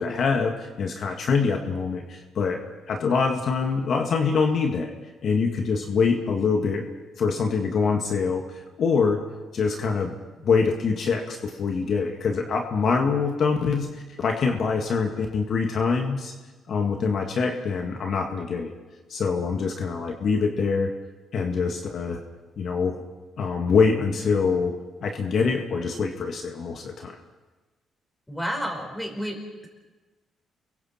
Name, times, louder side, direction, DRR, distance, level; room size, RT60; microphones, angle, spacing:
voice 1, 0.0-4.9 5.2-6.9 7.2-9.2 9.5-10.1 10.4-16.3 16.7-18.8 19.1-20.9 21.3-22.2 22.6-23.0 23.4-24.7 25.0-27.2, left 5 dB, 60° left, 3 dB, 1.8 m, -24 dB
voice 2, 28.3-29.7, equal, 10° left, 3 dB, 5.1 m, -31 dB
29.5 x 23.0 x 4.4 m, 1.3 s
cardioid pair, 90°, 0 cm